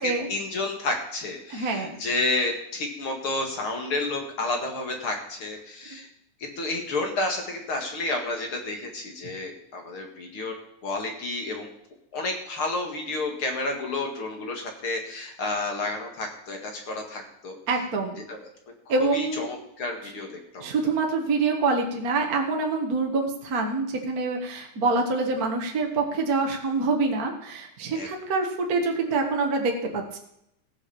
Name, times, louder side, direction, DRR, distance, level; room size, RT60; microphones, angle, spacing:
voice 1, 0.0-6.1 6.4-10.5 10.8-11.7 12.1-17.6 18.3-18.5 19.0-20.7 27.9-28.1, left 2 dB, 45° left, 3 dB, 2.4 m, -30 dB
voice 2, 1.5-2.0 5.9-6.0 17.7-18.2 18.9-19.5 20.6-30.2, right 3 dB, 40° right, 2 dB, 1.5 m, -26 dB
16.0 x 6.3 x 7.1 m, 0.77 s
omnidirectional pair, 3.8 m